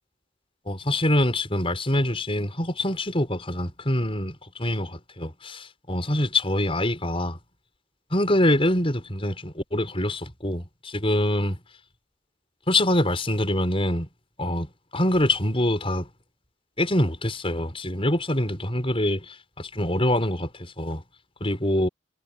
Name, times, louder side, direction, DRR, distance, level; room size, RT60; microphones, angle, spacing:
voice 1, 0.7-7.4 8.1-11.6 12.7-14.1 14.4-16.1 16.8-21.0 21.4-21.9, left 1 dB, 25° left, 6.1 m, -25 dB
head